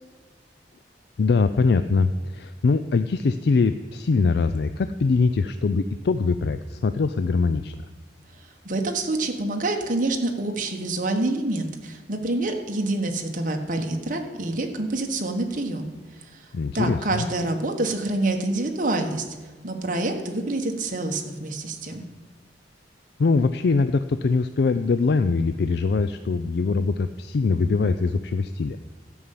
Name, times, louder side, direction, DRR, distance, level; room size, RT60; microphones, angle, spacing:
voice 1, 1.2-7.8 16.5-17.2 23.2-28.8, left 4 dB, 65° left, 11 dB, 0.4 m, -22 dB
voice 2, 8.6-15.9 16.2-16.4 16.7-19.3 19.6-22.1, right 2 dB, 50° right, 4 dB, 1.3 m, -27 dB
12.5 x 5.6 x 8.4 m, 1.3 s
head